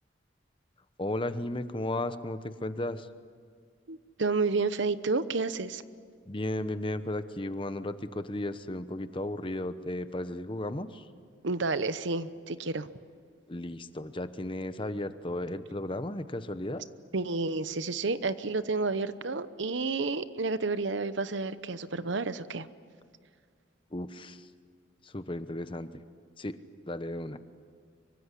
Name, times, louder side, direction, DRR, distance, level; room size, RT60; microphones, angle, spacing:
voice 1, 1.0-3.1 6.3-11.1 13.5-16.8 23.9-24.5 25.0-25.9 26.4-26.6 26.9-27.4, left 1 dB, 25° left, 11 dB, 1.0 m, -34 dB
voice 2, 3.9-5.8 11.4-12.9 17.1-22.7, right 3 dB, 70° right, 13 dB, 0.9 m, -30 dB
25.0 x 24.0 x 10.0 m, 2.1 s
head